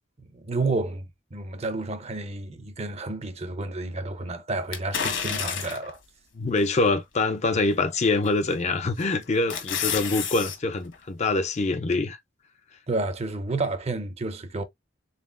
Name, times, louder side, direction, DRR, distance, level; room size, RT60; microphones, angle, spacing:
voice 1, 0.3-6.0 12.9-14.6, right 2 dB, 35° right, 0.6 m, -30 dB
sound 1, 4.7-6.0 6.6-6.7 8.2-8.6 9.0-10.6 10.9-11.0, left 7 dB, 65° left, 1.3 m, -30 dB
voice 2, 6.3-12.2, left 3 dB, 35° left, 0.5 m, -25 dB
4.1 x 3.7 x 2.4 m
head